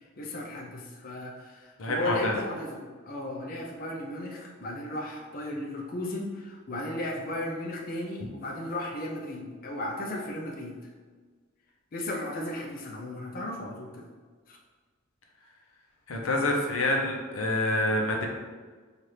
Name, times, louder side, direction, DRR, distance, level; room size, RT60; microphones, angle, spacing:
voice 1, 0.2-10.7 11.9-14.1 14.5-14.6, left 1 dB, 45° left, -1 dB, 0.5 m, -35 dB
voice 2, 1.8-2.4 16.1-18.3, left 1 dB, 85° left, 1 dB, 0.6 m, -27 dB
4.2 x 2.5 x 3.2 m, 1.4 s
head